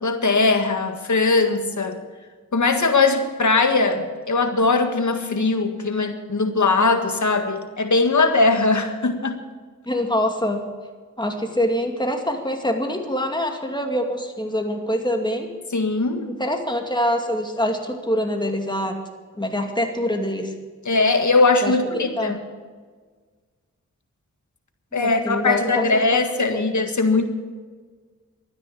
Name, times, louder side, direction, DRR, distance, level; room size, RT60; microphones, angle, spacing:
voice 1, 0.0-2.0 2.5-9.3 15.7-16.3 20.8-22.4 24.9-27.3, left 3 dB, 65° left, 7 dB, 1.8 m, -20 dB
voice 2, 9.9-10.7 11.2-15.5 16.3-19.0 19.4-20.5 21.6-22.3 24.9-26.0 26.5-26.7, left 1 dB, 15° left, 4 dB, 2.4 m, -25 dB
13.0 x 9.8 x 8.7 m, 1.5 s
cardioid pair, 45°, 31 cm